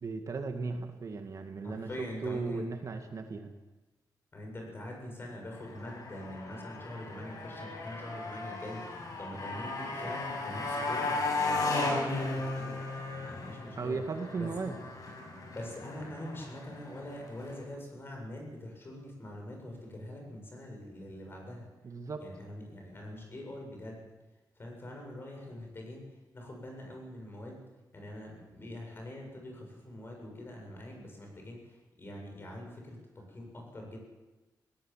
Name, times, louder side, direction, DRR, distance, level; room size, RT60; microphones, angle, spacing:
voice 1, 0.0-3.5 13.8-14.8 21.8-22.2, right 4 dB, 50° right, 5 dB, 2.1 m, -36 dB
voice 2, 1.6-2.7 4.3-8.8 9.2-12.8 13.2-14.0 14.3-14.5 15.5-21.7 22.2-24.0 24.6-26.0 26.3-27.6 27.9-34.0, left 1 dB, 30° left, 1 dB, 7.9 m, -44 dB
Motorcycle, 5.5-17.6, left 3 dB, 55° left, 6.4 m, -36 dB
20.5 x 18.5 x 7.5 m, 1.1 s
wide cardioid pair, 130°, 7 cm